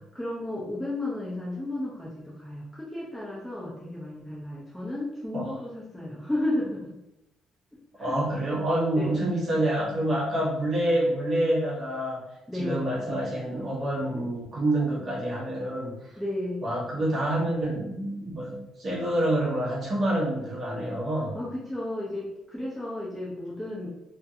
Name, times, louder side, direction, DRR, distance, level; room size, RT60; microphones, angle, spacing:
voice 1, 0.1-7.0 8.0-8.2 9.0-9.1 12.5-12.8 16.2-16.6 21.1-23.9, left 1 dB, 5° left, -7 dB, 0.4 m, -33 dB
voice 2, 8.0-12.2 12.5-16.1 16.6-21.3, right 1 dB, 30° right, -6 dB, 0.8 m, -27 dB
2.4 x 2.4 x 2.6 m, 0.87 s
cardioid pair, 175°, 0 cm